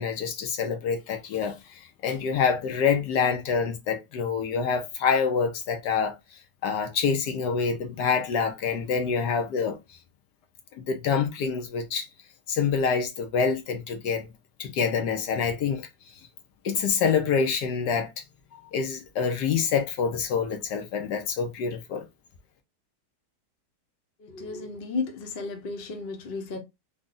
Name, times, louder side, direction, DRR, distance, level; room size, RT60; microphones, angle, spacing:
voice 1, 0.0-6.2 6.6-9.8 10.9-12.1 12.5-14.3 14.6-15.9 16.6-18.1 18.5-22.0, left 6 dB, 75° left, 1.4 m, -26 dB
voice 2, 24.2-26.6, left 4 dB, 45° left, 0.9 m, -33 dB
3.8 x 2.3 x 3.8 m
omnidirectional pair, 1.8 m